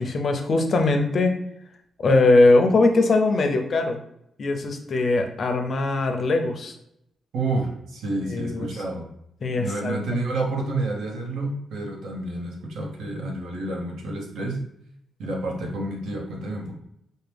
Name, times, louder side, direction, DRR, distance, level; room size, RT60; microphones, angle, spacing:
voice 1, 0.0-1.3 2.0-4.0 4.4-6.7 8.3-8.7 9.4-10.0, left 2 dB, 40° left, 5 dB, 0.5 m, -20 dB
voice 2, 7.3-9.1 9.5-14.6 15.2-16.7, right 2 dB, 90° right, 0 dB, 1.0 m, -29 dB
4.4 x 2.2 x 3.4 m, 0.78 s
wide cardioid pair, 170°, 0 cm